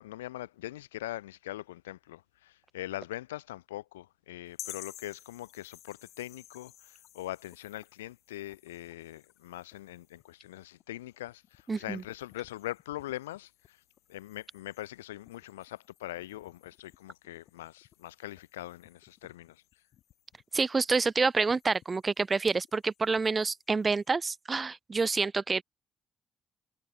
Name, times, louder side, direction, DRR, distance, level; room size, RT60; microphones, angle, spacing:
voice 1, 0.0-13.8 14.1-19.6, left 15 dB, 85° left, 0.6 m, -42 dB
sound 1, 4.5-24.1, left 12 dB, 65° left, 3.7 m, -55 dB
voice 2, 11.7-12.0 20.5-25.6, right 4 dB, 35° right, 0.7 m, -28 dB
hypercardioid pair, 45°, 0 cm